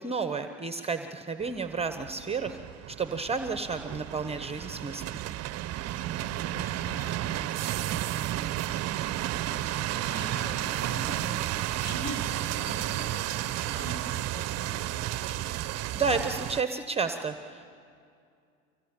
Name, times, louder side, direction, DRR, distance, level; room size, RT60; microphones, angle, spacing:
voice 1, 0.0-2.6 2.9-5.0 15.9-17.7, right 4 dB, 15° right, 8 dB, 1.0 m, -31 dB
sound 1, 1.4-16.6, right 14 dB, 40° right, 0.7 m, -32 dB
voice 2, 5.9-8.8 9.5-15.4, equal, 50° left, 2 dB, 7.9 m, -43 dB
24.5 x 18.0 x 8.8 m, 2.3 s
hypercardioid pair, 90°, 38 cm